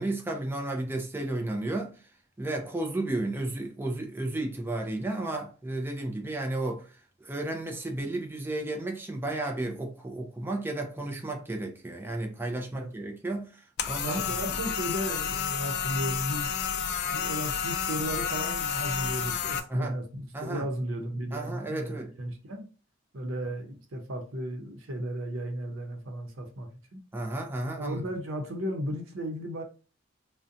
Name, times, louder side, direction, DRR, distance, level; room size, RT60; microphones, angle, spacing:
voice 1, 0.0-1.9 2.4-6.9 7.2-13.6 13.9-14.2 19.7-20.0 20.3-20.7 21.3-22.1 27.1-28.0, right 2 dB, 10° right, 0.4 m, -33 dB
sound 1, 13.8-19.6, left 7 dB, 55° left, 0.3 m, -30 dB
voice 2, 14.0-16.5 17.1-22.7 23.1-27.0 27.8-29.6, equal, 80° right, 0.7 m, -35 dB
2.5 x 2.1 x 2.6 m
head